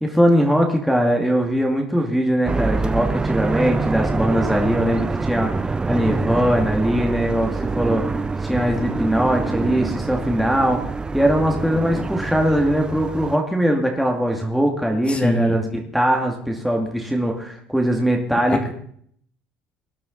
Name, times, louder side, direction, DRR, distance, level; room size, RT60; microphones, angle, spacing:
voice 1, 0.0-18.7, equal, ahead, 0 dB, 2.4 m, -21 dB
sound 1, 2.5-13.4, right 3 dB, 20° right, 0.5 m, -25 dB
voice 2, 15.1-15.6 18.5-18.7, left 2 dB, 25° left, 5 dB, 2.3 m, -23 dB
19.5 x 11.0 x 4.1 m, 0.63 s
supercardioid pair, 90°, 5 cm